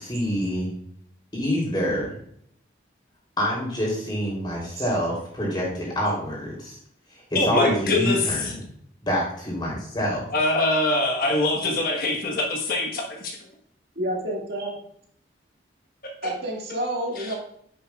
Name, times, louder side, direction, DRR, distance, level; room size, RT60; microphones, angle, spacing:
voice 1, 0.1-0.7 1.3-2.1 3.4-6.8 7.3-8.6 9.0-10.3, equal, 25° left, -4 dB, 3.2 m, -26 dB
voice 2, 7.3-8.5 10.3-13.4 17.2-17.4, left 2 dB, 50° left, 1 dB, 1.3 m, -24 dB
voice 3, 14.0-14.8 16.2-17.4, right 1 dB, 60° right, -2 dB, 2.0 m, -29 dB
9.7 x 7.0 x 2.4 m, 0.65 s
head